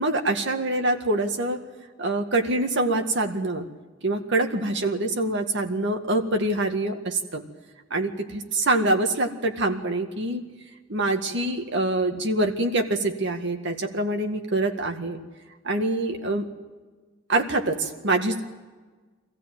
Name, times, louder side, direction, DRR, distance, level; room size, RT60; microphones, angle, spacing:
voice 1, 0.0-1.6 2.0-3.7 4.0-7.4 7.9-10.4 10.9-15.2 15.6-16.5 17.3-18.4, right 2 dB, 65° right, 5 dB, 2.0 m, -25 dB
24.5 x 15.5 x 9.1 m, 1.4 s
head